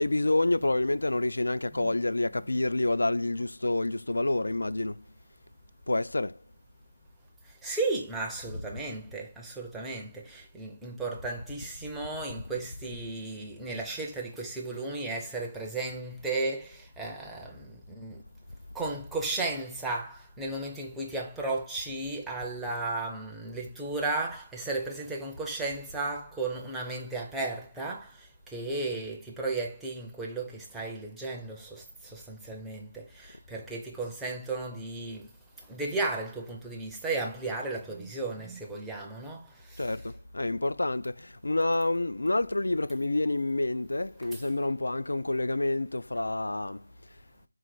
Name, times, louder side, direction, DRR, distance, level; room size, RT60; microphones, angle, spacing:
voice 1, 0.0-5.0 5.9-6.4 39.8-46.8, left 2 dB, 80° left, 0.3 m, -28 dB
voice 2, 7.6-18.2 18.7-35.3 35.7-39.9 44.3-44.4, right 3 dB, 5° right, 0.4 m, -35 dB
3.9 x 2.4 x 4.5 m
figure-of-eight pair, 170°, 0 cm